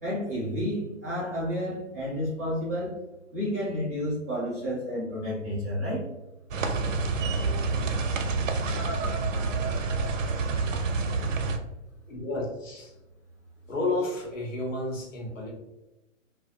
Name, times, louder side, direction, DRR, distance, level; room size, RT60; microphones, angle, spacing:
voice 1, 0.0-2.9 3.3-6.0, equal, 15° right, -11 dB, 0.4 m, -30 dB
sound 1, 6.5-11.6, right 3 dB, 90° right, 0.6 m, -28 dB
voice 2, 12.1-12.9 13.7-15.5, left 2 dB, 80° left, -1 dB, 1.2 m, -31 dB
2.6 x 2.4 x 2.7 m, 0.96 s
hypercardioid pair, 165°, 38 cm